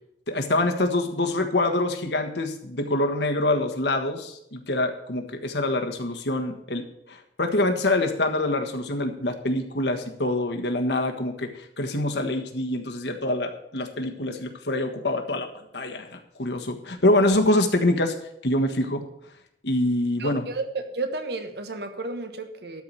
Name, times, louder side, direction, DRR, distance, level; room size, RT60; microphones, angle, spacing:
voice 1, 0.3-6.8 7.1-15.5 15.7-18.1 18.4-19.0 19.6-20.4, left 1 dB, 80° left, 4 dB, 1.5 m, -25 dB
voice 2, 20.2-22.8, right 3 dB, 65° right, 7 dB, 1.3 m, -32 dB
12.5 x 4.8 x 8.7 m, 0.78 s
head